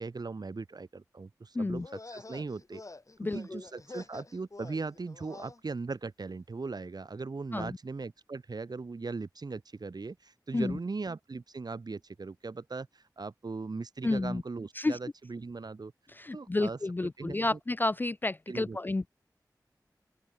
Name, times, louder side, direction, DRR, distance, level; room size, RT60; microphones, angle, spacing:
voice 1, 0.0-2.8 3.2-15.9 16.3-17.6 18.5-18.8, right 4 dB, 70° right, 2.2 m, -39 dB
sound 1, 1.8-5.6, left 2 dB, 50° left, 4.9 m, -47 dB
voice 2, 3.2-3.6 7.5-7.7 10.5-10.8 14.0-14.4 14.8-15.0 16.2-19.1, left 2 dB, 25° left, 0.4 m, -31 dB
open air
wide cardioid pair, 60°, 7 cm